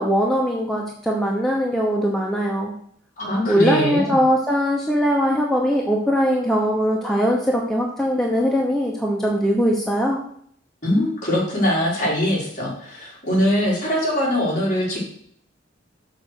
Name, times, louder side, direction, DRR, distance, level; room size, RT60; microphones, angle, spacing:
voice 1, 0.0-2.7 3.5-10.2, equal, ahead, -2 dB, 0.9 m, -21 dB
voice 2, 3.2-4.1 10.8-15.0, left 1 dB, 40° left, -5 dB, 4.1 m, -22 dB
6.5 x 6.2 x 6.4 m, 0.64 s
head